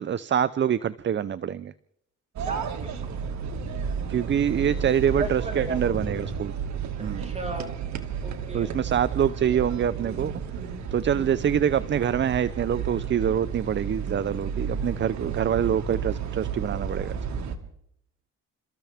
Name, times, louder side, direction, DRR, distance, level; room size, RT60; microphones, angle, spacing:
voice 1, 0.0-1.7 4.1-6.5 7.0-7.3 8.5-10.3 10.9-17.2, right 9 dB, 40° right, 17 dB, 0.6 m, -25 dB
sound 1, 2.4-17.6, right 6 dB, 65° right, 2.0 m, -32 dB
voice 2, 2.5-3.0 5.2-5.8 7.2-7.8 8.2-8.7, right 2 dB, 20° right, 2 dB, 5.0 m, -35 dB
29.5 x 14.0 x 3.5 m, 0.71 s
cardioid pair, 90°, 30 cm